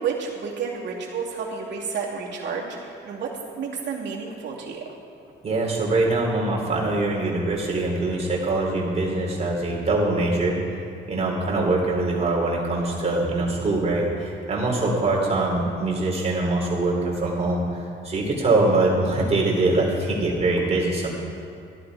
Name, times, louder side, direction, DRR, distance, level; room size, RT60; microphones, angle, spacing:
voice 1, 0.0-4.8, right 6 dB, 65° right, -4 dB, 2.6 m, -31 dB
voice 2, 5.4-10.6 11.1-21.1, right 2 dB, 30° right, -3 dB, 3.6 m, -23 dB
14.0 x 11.5 x 4.9 m, 2.5 s
cardioid pair, 90°, 20 cm